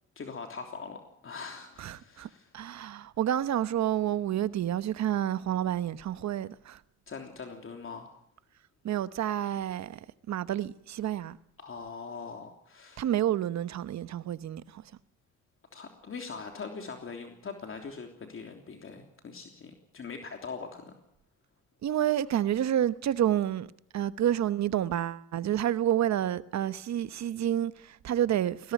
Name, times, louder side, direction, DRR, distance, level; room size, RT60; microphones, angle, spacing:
voice 1, 0.1-2.5 7.1-8.1 11.6-13.1 15.7-21.0, left 5 dB, 45° left, 3.3 m, -42 dB
voice 2, 1.8-2.3 2.5-6.8 8.8-10.0 10.3-11.4 13.0-14.8 21.8-23.7 23.9-28.7, right 11 dB, 65° right, 1.1 m, -29 dB
20.0 x 17.5 x 9.2 m
cardioid pair, 90°, 30 cm